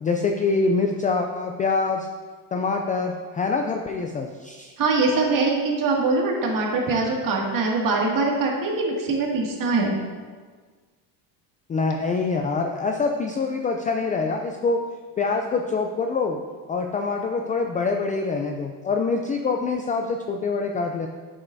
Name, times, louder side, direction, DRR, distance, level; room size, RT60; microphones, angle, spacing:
voice 1, 0.0-2.1 2.5-4.7 11.7-14.9 15.2-16.4 16.7-21.1, left 4 dB, 20° left, 3 dB, 0.3 m, -25 dB
voice 2, 4.8-9.9, right 3 dB, 40° right, -2 dB, 2.0 m, -23 dB
9.3 x 7.5 x 2.6 m, 1.5 s
supercardioid pair, 110°, 48 cm